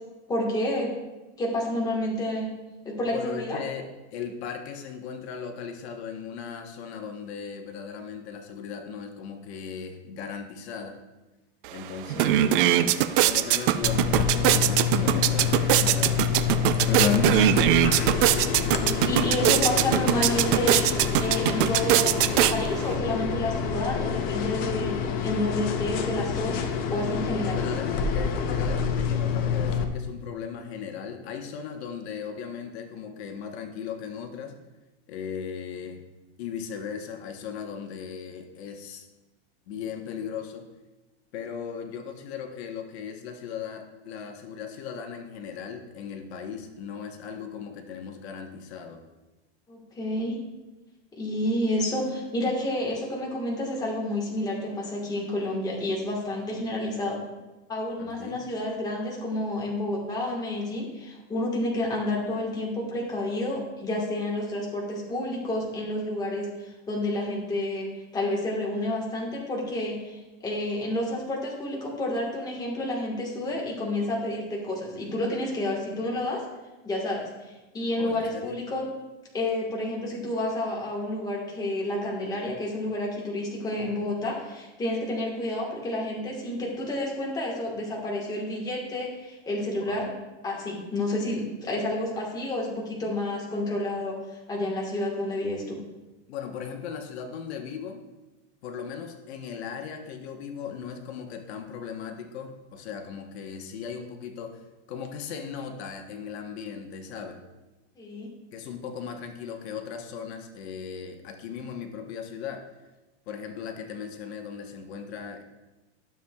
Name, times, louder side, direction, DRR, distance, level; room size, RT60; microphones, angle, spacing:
voice 1, 0.3-0.9 1.4-2.5 2.8-3.6 12.1-12.9 18.5-27.6 49.7-50.4 51.1-57.2 57.7-76.4 76.8-77.3 77.7-78.8 79.3-90.1 90.4-94.2 94.5-95.8 108.0-108.3, left 1 dB, 10° left, -2 dB, 1.4 m, -30 dB
voice 2, 3.0-11.0 11.7-12.9 13.2-16.4 16.8-17.8 27.4-34.6 35.1-36.0 36.4-39.1 39.7-40.6 41.3-49.0 58.0-58.4 78.0-78.6 89.8-90.0 96.3-98.0 98.6-107.4 108.5-112.7 113.3-115.4, left 7 dB, 70° left, 4 dB, 1.1 m, -37 dB
sound 1, 11.6-11.7 12.0-22.9, right 13 dB, 50° right, 0.4 m, -22 dB
sound 2, 13.8-29.8, left 7 dB, 25° left, 0.5 m, -27 dB
12.5 x 7.0 x 2.3 m, 1.1 s
supercardioid pair, 160°, 34 cm